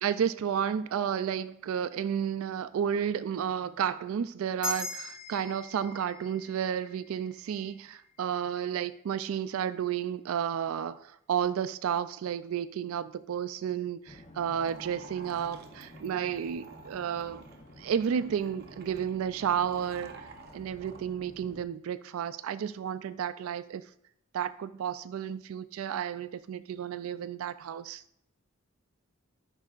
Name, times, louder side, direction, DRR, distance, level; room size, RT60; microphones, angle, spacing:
voice 1, 0.0-17.4 17.8-20.3 20.5-23.8 24.3-28.0, right 8 dB, 80° right, 0.3 m, -32 dB
sound 1, 4.6-9.3, left 2 dB, 65° left, 2.9 m, -42 dB
sound 2, 14.1-21.6, left 1 dB, 30° left, 0.7 m, -52 dB
sound 3, 14.5-21.1, right 4 dB, 45° right, 0.7 m, -51 dB
11.5 x 5.4 x 2.4 m
head